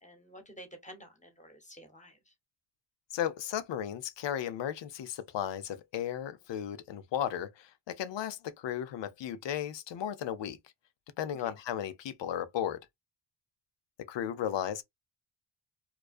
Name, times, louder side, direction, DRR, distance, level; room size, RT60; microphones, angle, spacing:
voice 1, 0.0-2.3 11.4-11.6, equal, 15° left, 1.1 m, -51 dB
voice 2, 3.1-10.6 11.2-12.8 14.1-14.8, left 10 dB, 60° left, 0.6 m, -35 dB
2.3 x 2.2 x 2.4 m
cardioid pair, 65°, 49 cm